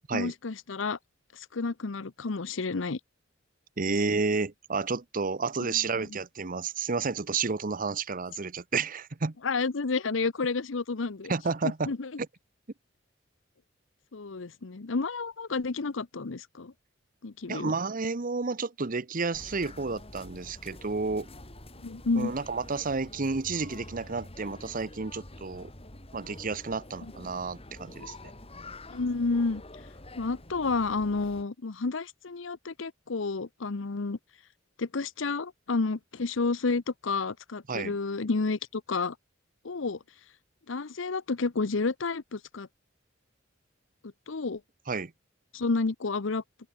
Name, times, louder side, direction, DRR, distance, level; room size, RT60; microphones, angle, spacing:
voice 1, 0.1-1.0 1.3-3.0 5.7-5.8 9.4-11.3 11.6-12.1 14.1-16.7 17.2-17.7 21.8-22.3 27.0-27.1 28.9-29.6 30.2-34.2 34.8-39.1 39.6-40.0 40.7-42.7 44.3-44.6 45.5-46.4, left 3 dB, 75° left, 0.8 m, -30 dB
voice 2, 3.8-9.3 11.3-11.9 17.5-21.3 22.2-25.7 26.1-28.3 37.7-37.9 44.9-45.1, right 4 dB, 45° right, 0.9 m, -31 dB
sound 1, 19.3-31.4, left 1 dB, 30° left, 5.5 m, -47 dB
open air
head